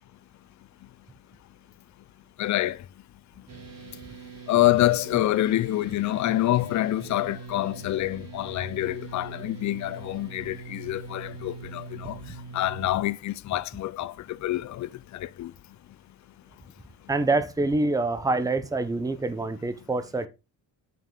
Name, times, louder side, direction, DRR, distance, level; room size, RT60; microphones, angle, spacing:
voice 1, 2.4-2.8 4.5-12.2 12.5-15.5, left 15 dB, 50° left, 0.5 m, -26 dB
sound 1, 3.5-13.0, right 4 dB, 40° right, 2.2 m, -43 dB
voice 2, 17.1-20.3, right 2 dB, 10° right, 0.8 m, -26 dB
7.6 x 5.4 x 3.8 m
cardioid pair, 115°, 39 cm